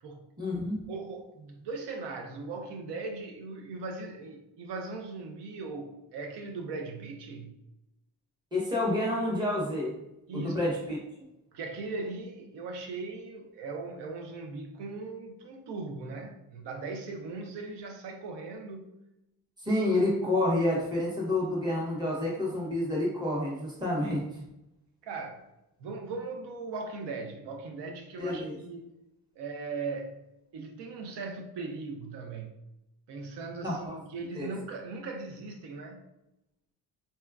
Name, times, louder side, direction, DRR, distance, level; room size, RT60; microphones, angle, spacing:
voice 1, 0.4-0.8 8.5-9.9 10.3-11.0 19.6-24.2 28.2-28.5 33.6-33.9 34.4-34.5, left 1 dB, 10° right, -5 dB, 0.8 m, -29 dB
voice 2, 0.9-7.5 10.3-10.6 11.5-18.9 25.0-25.4 25.8-28.9 29.4-30.2 30.5-32.5 33.1-36.0, right 3 dB, 85° right, 4 dB, 0.6 m, -39 dB
4.1 x 2.2 x 2.3 m, 0.87 s
wide cardioid pair, 180°, 41 cm